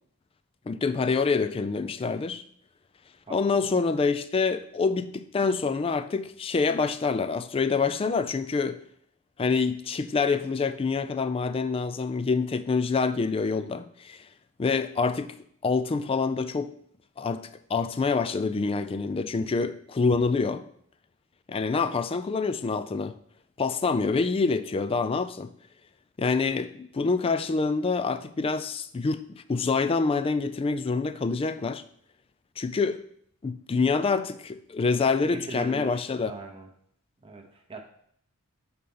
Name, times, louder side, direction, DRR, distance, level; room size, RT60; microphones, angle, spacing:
voice 1, 0.7-2.4 3.3-8.8 9.4-14.2 14.6-15.3 15.6-16.7 17.2-20.6 21.5-23.1 23.6-25.5 26.2-31.8 32.6-33.0 33.4-36.3, left 4 dB, 25° left, 13 dB, 0.3 m, -26 dB
voice 2, 3.2-3.8 35.2-36.7 37.2-37.8, right 3 dB, 25° right, 3 dB, 0.7 m, -41 dB
6.4 x 4.3 x 5.4 m, 0.66 s
head